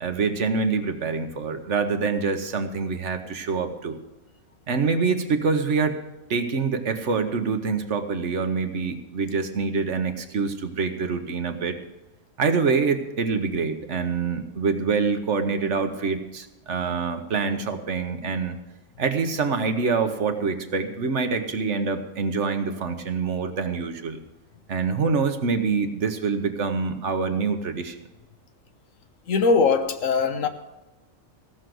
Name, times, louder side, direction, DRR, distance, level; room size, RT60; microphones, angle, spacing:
voice 1, 0.0-4.0 4.7-6.0 6.3-11.8 12.4-18.6 19.0-24.2 24.7-28.0, right 5 dB, 65° right, 1.4 m, -25 dB
voice 2, 29.3-30.5, left 4 dB, 80° left, 1.4 m, -21 dB
16.0 x 6.5 x 7.7 m
omnidirectional pair, 1.3 m